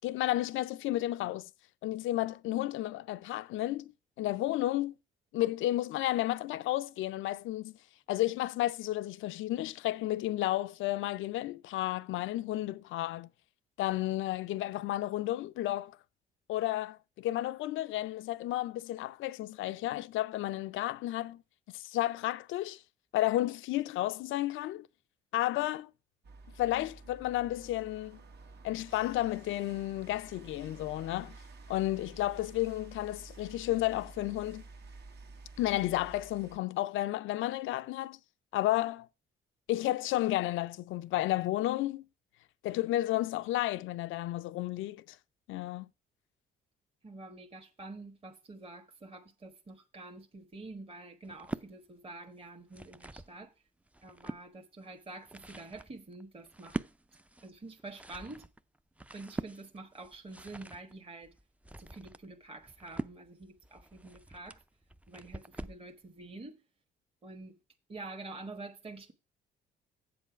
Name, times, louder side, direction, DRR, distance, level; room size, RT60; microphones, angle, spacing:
voice 1, 0.0-1.5 1.8-3.9 4.2-4.9 5.3-7.7 8.1-13.3 13.8-15.9 16.5-21.4 21.7-22.8 23.1-24.9 25.3-25.9 26.6-28.2 28.6-31.3 31.7-34.6 35.6-38.2 38.5-39.1 39.7-42.0 42.6-45.2 45.5-45.9, left 15 dB, 85° left, 0.5 m, -32 dB
sound 1, 26.2-36.6, right 3 dB, 55° right, 1.2 m, -51 dB
voice 2, 47.0-53.5 54.0-56.8 57.4-58.5 59.1-61.3 61.8-64.6 65.1-66.6 67.2-67.5 67.9-69.1, right 2 dB, 30° right, 1.3 m, -47 dB
sound 2, 51.2-51.7 52.5-53.3 53.8-54.4 55.0-65.9, right 2 dB, 5° right, 0.4 m, -44 dB
8.2 x 7.7 x 5.0 m
cardioid pair, 90°, 20 cm